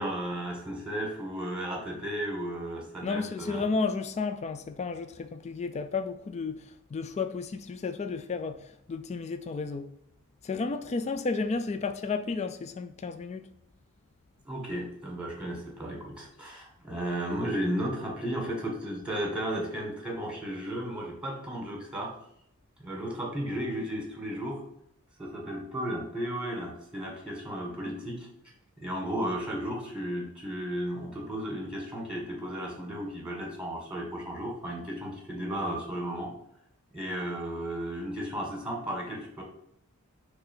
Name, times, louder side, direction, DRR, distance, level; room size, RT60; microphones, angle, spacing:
voice 1, 0.0-3.6 14.5-22.1 22.8-24.6 25.2-28.3 28.8-36.3 36.9-39.4, right 1 dB, 5° right, 1.9 m, -34 dB
voice 2, 3.0-10.0 10.4-13.5, left 4 dB, 30° left, 0.3 m, -32 dB
5.8 x 3.4 x 5.5 m
head